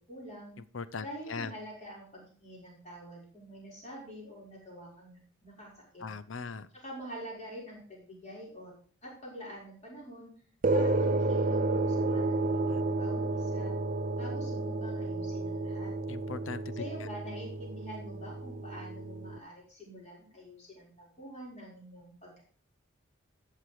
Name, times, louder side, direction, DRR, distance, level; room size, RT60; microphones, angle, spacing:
voice 1, 0.1-0.5 1.0-6.1 6.7-8.7 9.0-10.3 10.7-13.7 14.2-15.9 16.7-22.4, equal, 35° left, -4 dB, 6.0 m, -46 dB
voice 2, 0.7-1.5 6.0-6.7 12.5-12.8 16.1-16.8, left 5 dB, 70° left, 15 dB, 0.7 m, -40 dB
sound 1, 10.6-19.4, right 2 dB, 40° right, 0.6 m, -31 dB
13.5 x 6.7 x 4.9 m, 0.43 s
head